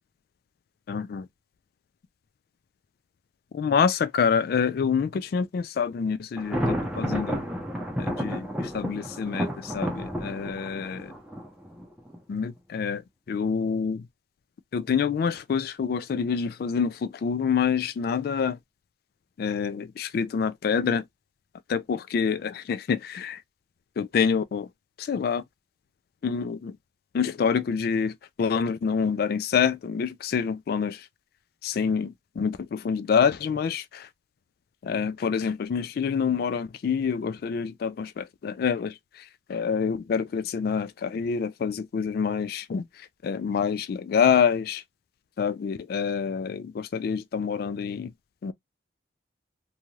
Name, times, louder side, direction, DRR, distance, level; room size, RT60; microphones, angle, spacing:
voice 1, 0.9-1.3 3.5-6.6 7.0-7.4 8.0-11.1 12.3-13.0 13.3-14.1 14.7-18.6 19.4-21.1 21.7-23.4 24.0-24.7 25.0-25.4 26.2-26.8 27.1-31.1 31.6-34.1 34.8-44.8 45.4-48.1 48.4-48.5, left 6 dB, 55° left, 0.3 m, -27 dB
Thunder, 6.4-12.2, equal, 5° right, 0.7 m, -31 dB
2.6 x 2.3 x 3.1 m
head